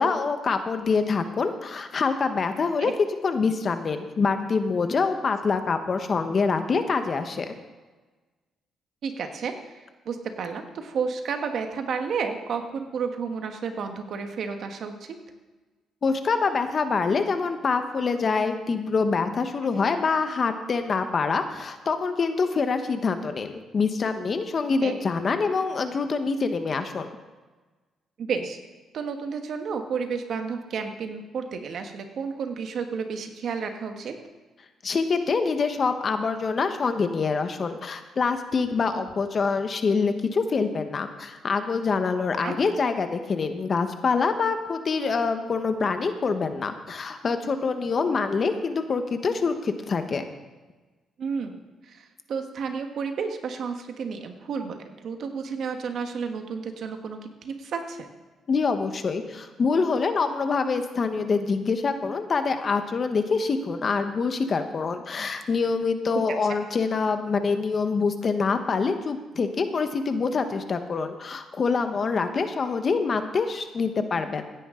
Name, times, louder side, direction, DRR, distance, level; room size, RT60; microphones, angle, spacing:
voice 1, 0.0-2.9 3.2-7.6 16.0-27.1 34.8-50.3 58.5-74.4, left 4 dB, 45° left, 8 dB, 1.1 m, -25 dB
voice 2, 9.0-15.2 24.8-25.0 28.2-28.6 28.9-34.2 42.4-42.6 51.2-58.1, right 5 dB, 65° right, 6 dB, 1.4 m, -31 dB
16.0 x 9.9 x 3.8 m, 1.2 s
cardioid pair, 90°, 0 cm